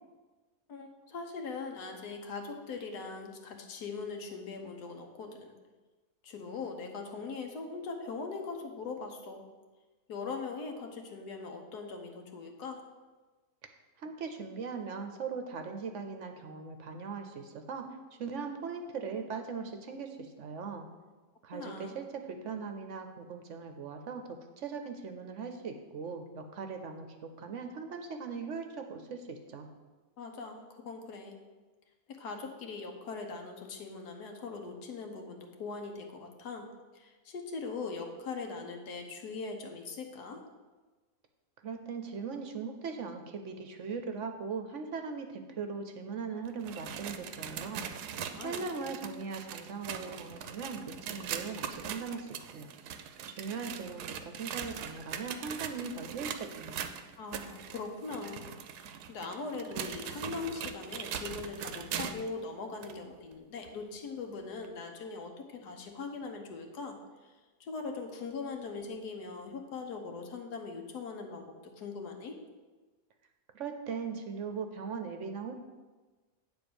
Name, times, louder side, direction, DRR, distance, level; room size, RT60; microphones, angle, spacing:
voice 1, 0.7-5.5 6.2-9.4 10.1-12.8 21.5-22.0 30.2-31.4 32.2-36.7 36.9-40.4 48.4-48.7 57.2-58.5 58.7-67.0 67.6-72.3, left 4 dB, 90° left, 3 dB, 1.5 m, -41 dB
voice 2, 14.0-17.9 18.2-20.9 21.4-27.1 27.4-29.7 41.6-47.9 48.4-52.7 53.3-56.9 73.5-75.5, right 5 dB, 60° right, 6 dB, 0.9 m, -39 dB
sound 1, 46.5-62.3 62.8-62.9 63.6-63.7 64.6-64.7, right 8 dB, 90° right, 1.2 m, -41 dB
8.9 x 3.9 x 6.9 m, 1.3 s
omnidirectional pair, 1.7 m